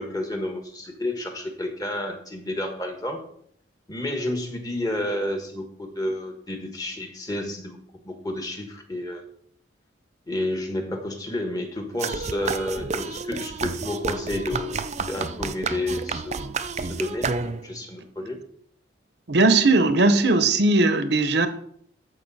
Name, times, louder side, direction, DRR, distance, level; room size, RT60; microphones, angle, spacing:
voice 1, 0.0-3.2 3.9-7.8 8.0-9.2 10.3-16.5 16.9-18.4, left 1 dB, 20° left, 4 dB, 1.4 m, -30 dB
sound 1, 12.0-17.8, right 4 dB, 35° right, 0.5 m, -30 dB
voice 2, 19.3-21.5, right 2 dB, 65° right, 10 dB, 0.8 m, -18 dB
13.5 x 5.3 x 4.1 m, 0.65 s
head